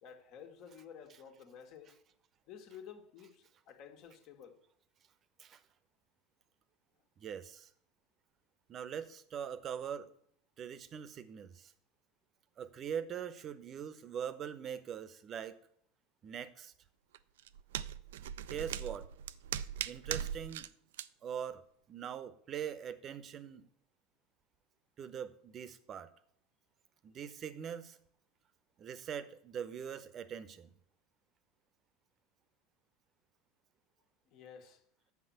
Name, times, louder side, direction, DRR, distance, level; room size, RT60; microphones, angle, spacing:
voice 1, 0.0-2.0 2.5-4.6 34.3-34.8, left 7 dB, 55° left, 5 dB, 1.7 m, -52 dB
voice 2, 7.2-7.7 8.7-10.1 10.6-11.7 12.6-15.5 16.2-16.7 18.5-19.1 19.9-20.7 21.2-21.6 21.9-23.7 25.0-26.1 27.0-28.0 28.8-30.7, right 8 dB, 40° right, 15 dB, 0.8 m, -42 dB
sound 1, 17.1-20.7 20.9-21.1, right 10 dB, 70° right, 0.4 m, -40 dB
7.3 x 6.0 x 7.7 m, 0.66 s
hypercardioid pair, 80°, 0 cm